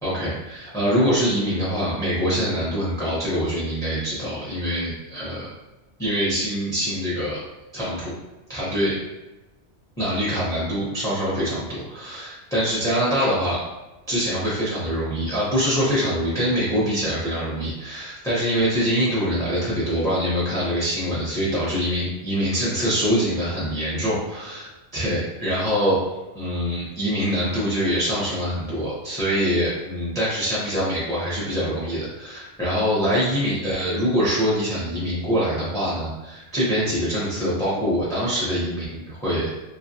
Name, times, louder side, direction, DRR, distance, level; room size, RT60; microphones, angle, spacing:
voice 1, 0.0-5.5 6.0-7.4 7.7-8.1 8.5-8.9 10.0-13.6 14.1-26.0 26.3-39.6, equal, 5° left, -8 dB, 0.6 m, -24 dB
2.9 x 2.4 x 2.7 m, 1.1 s
omnidirectional pair, 1.3 m